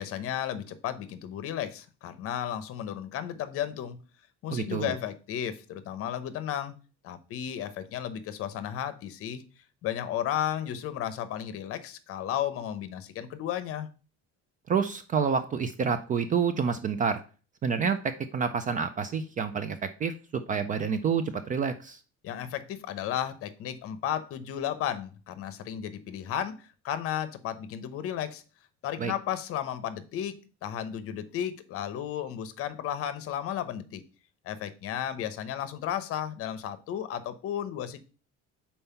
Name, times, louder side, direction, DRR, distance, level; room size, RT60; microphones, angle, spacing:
voice 1, 0.0-4.0 4.4-6.7 7.0-9.4 9.8-13.9 22.2-26.5 26.8-28.4 28.8-30.3 30.6-34.0 34.4-38.0, left 10 dB, 50° left, 12 dB, 0.8 m, -33 dB
voice 2, 4.5-4.9 14.7-17.2 17.6-22.0 29.0-29.1, right 6 dB, 30° right, 11 dB, 0.4 m, -28 dB
5.5 x 4.4 x 5.6 m, 0.36 s
cardioid pair, 170°, 29 cm